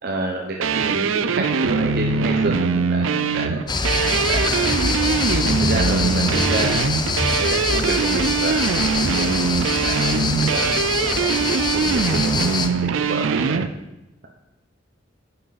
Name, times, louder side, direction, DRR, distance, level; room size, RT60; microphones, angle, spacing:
voice 1, 0.0-3.6 4.3-4.8 5.1-6.7 7.3-8.7 9.0-13.6, right 2 dB, 55° right, 0 dB, 0.9 m, -29 dB
sound 1, 0.6-13.7, right 5 dB, 85° right, 0.5 m, -22 dB
sound 2, 3.7-12.7, left 3 dB, 20° left, 0.6 m, -24 dB
10.5 x 7.9 x 4.1 m, 0.96 s
head